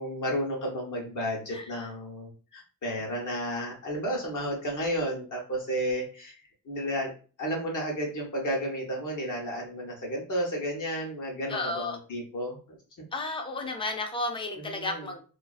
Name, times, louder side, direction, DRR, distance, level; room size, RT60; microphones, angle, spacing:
voice 1, 0.0-7.1 7.4-12.8 14.6-15.1, equal, 60° left, -1 dB, 0.8 m, -32 dB
voice 2, 11.5-12.0 13.1-15.2, left 2 dB, 15° left, 3 dB, 0.4 m, -32 dB
2.4 x 2.3 x 2.4 m, 0.37 s
wide cardioid pair, 165°, 34 cm